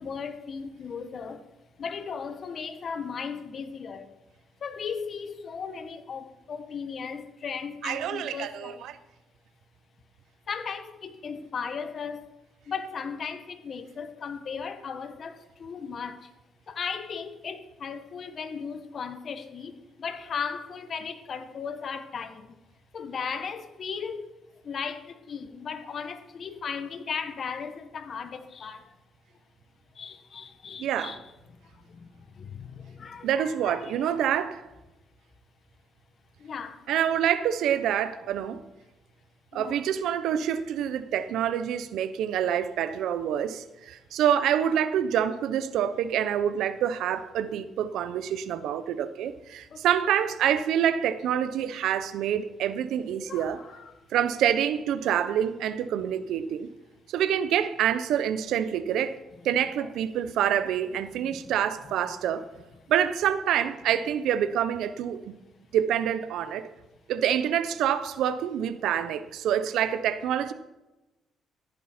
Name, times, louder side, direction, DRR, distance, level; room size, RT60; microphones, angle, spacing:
voice 1, 0.0-1.4 1.8-4.1 4.6-8.8 10.5-12.2 12.7-16.3 16.7-22.6 22.9-24.3 24.6-28.9 29.9-31.2 31.7-34.1 36.4-36.8 39.5-39.9 49.7-49.8 53.1-54.0 59.8-59.9 61.3-61.5, left 6 dB, 50° left, 1.2 m, -36 dB
voice 2, 7.8-8.9 30.8-31.2 33.2-34.7 36.9-38.6 39.5-53.6 54.1-56.7 57.1-59.2 59.4-62.5 62.9-65.3 65.7-66.7 67.1-70.5, right 9 dB, 85° right, 0.8 m, -27 dB
14.5 x 10.5 x 4.4 m
cardioid pair, 90°, 0 cm